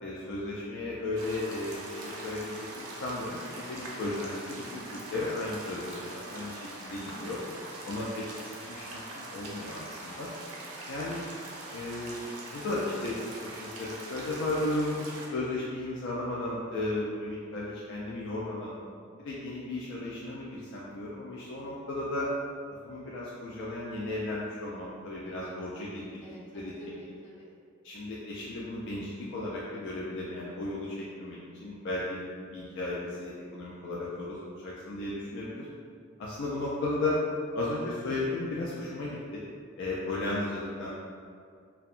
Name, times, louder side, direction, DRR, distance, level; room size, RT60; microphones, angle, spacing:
voice 1, 0.0-7.4 7.9-10.3 10.9-11.2 11.7-18.8 19.2-22.3 22.8-26.2 26.5-26.7 27.8-32.2 32.5-34.4 34.6-35.7 36.2-37.2 37.5-39.4 39.8-40.9, left 2 dB, 60° left, -5 dB, 0.3 m, -35 dB
sound 1, 1.2-15.3, right 1 dB, 80° right, 0.5 m, -43 dB
voice 2, 7.1-7.7 10.1-10.5 25.3-25.5 26.2-27.5, equal, 30° left, -12 dB, 1.1 m, -47 dB
2.7 x 2.2 x 2.4 m, 2.2 s
head